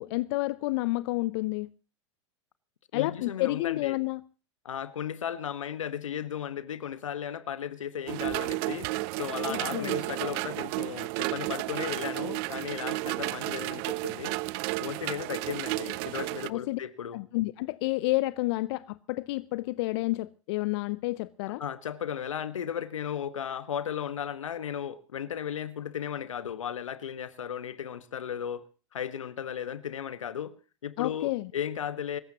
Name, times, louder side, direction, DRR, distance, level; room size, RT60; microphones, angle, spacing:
voice 1, 0.0-1.7 2.9-4.2 9.5-10.0 16.5-16.8 17.1-21.6 31.0-31.5, left 20 dB, 55° left, 0.6 m, -30 dB
voice 2, 2.9-4.0 4.6-8.9 9.2-14.4 14.8-17.2 21.6-28.6 28.9-30.5 30.8-32.2, left 9 dB, 80° left, 1.4 m, -35 dB
sound 1, 8.1-16.5, right 22 dB, 50° right, 0.6 m, -32 dB
25.5 x 14.5 x 3.0 m
hypercardioid pair, 100°, 16 cm